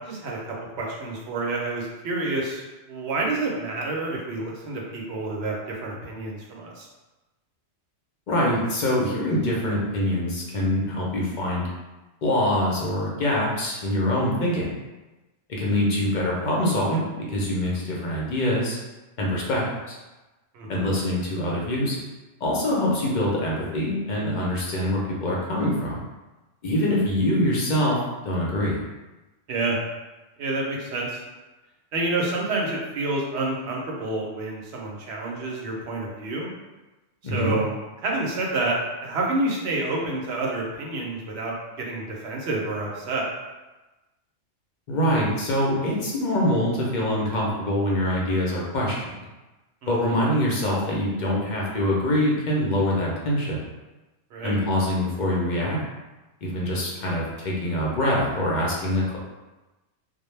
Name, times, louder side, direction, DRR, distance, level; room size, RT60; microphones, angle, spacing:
voice 1, 0.0-2.6 2.9-6.9 20.5-20.9 29.5-29.8 30.4-31.2 31.9-36.5 37.2-37.7 38.0-38.8 39.0-43.2 49.8-50.2 54.3-54.6, right 2 dB, 70° right, -2 dB, 0.8 m, -28 dB
voice 2, 8.3-11.7 12.2-14.7 15.5-18.8 19.2-20.0 20.7-22.0 22.4-26.0 26.6-28.8 37.2-37.6 44.9-49.2 49.9-53.6 54.4-55.8 56.4-59.2, left 1 dB, 55° left, -4 dB, 0.6 m, -24 dB
2.2 x 2.1 x 3.1 m, 1.1 s
omnidirectional pair, 1.2 m